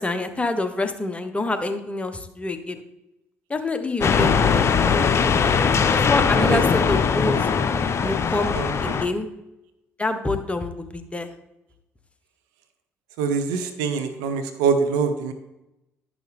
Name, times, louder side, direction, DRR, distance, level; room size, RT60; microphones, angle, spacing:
voice 1, 0.0-2.8 3.5-4.6 5.9-7.5 8.0-8.5 8.8-9.3 10.0-11.3, left 2 dB, 20° left, 8 dB, 1.2 m, -27 dB
sound 1, 4.0-9.1, left 6 dB, 45° left, 0.7 m, -20 dB
voice 2, 13.2-15.3, right 5 dB, 80° right, 7 dB, 0.8 m, -24 dB
10.5 x 6.2 x 3.5 m, 0.92 s
hypercardioid pair, 55°, 6 cm